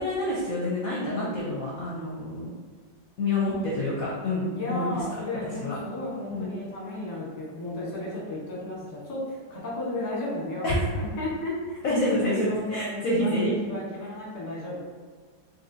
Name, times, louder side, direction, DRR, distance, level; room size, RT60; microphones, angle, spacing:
voice 1, 0.0-2.5 3.2-5.0 5.6-5.8 6.3-6.5 10.6-10.9 11.8-13.5, left 1 dB, 60° left, -5 dB, 0.9 m, -27 dB
voice 2, 4.5-14.8, left 1 dB, 30° left, -5 dB, 0.8 m, -34 dB
4.2 x 3.1 x 2.7 m, 1.5 s
omnidirectional pair, 2.1 m